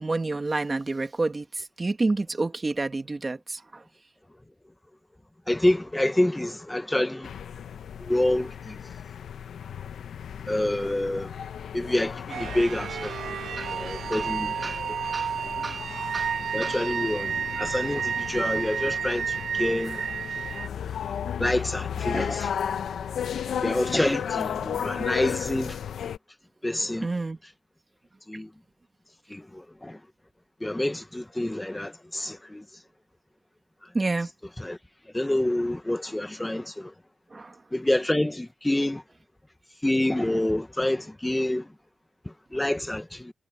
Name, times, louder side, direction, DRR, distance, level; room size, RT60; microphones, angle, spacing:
voice 1, 0.0-1.4 1.8-3.6 13.0-13.1 13.6-13.7 14.1-14.3 14.6-14.8 15.1-15.3 15.6-15.8 16.1-16.3 16.6-16.8 27.0-27.4 33.9-34.3 37.3-37.5, right 3 dB, 30° right, 2.2 m, -29 dB
voice 2, 5.5-7.3 8.1-8.7 10.5-11.3 11.7-13.1 13.7-14.7 16.5-20.0 21.4-22.5 23.6-25.8 26.6-27.1 28.3-28.5 29.3-29.4 29.8-29.9 30.6-32.6 34.6-34.8 35.1-36.9 37.7-39.0 39.8-41.6 42.5-43.3, left 1 dB, 10° left, 1.2 m, -27 dB
sound 1, 7.2-26.2, left 8 dB, 80° left, 1.0 m, -35 dB
sound 2, 12.3-20.7, right 7 dB, 75° right, 0.5 m, -31 dB
cardioid pair, 70°, 0 cm